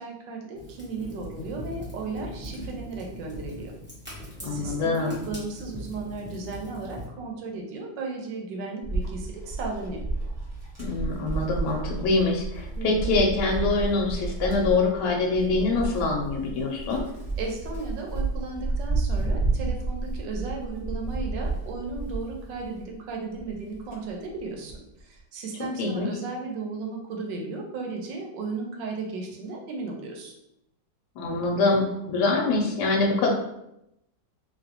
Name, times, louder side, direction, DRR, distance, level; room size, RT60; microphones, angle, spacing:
voice 1, 0.0-3.7 4.4-10.0 12.8-13.1 17.4-30.3, right 3 dB, 85° right, 1 dB, 1.4 m, -35 dB
Fire, 0.5-7.1, equal, 10° right, 0.5 m, -40 dB
voice 2, 4.4-5.2 10.8-17.0 25.8-26.1 31.2-33.3, left 3 dB, 75° left, 0 dB, 1.1 m, -24 dB
Wind, 8.8-22.9 23.4-24.9, right 3 dB, 25° right, 0.9 m, -31 dB
3.1 x 2.6 x 2.8 m, 0.84 s
omnidirectional pair, 1.9 m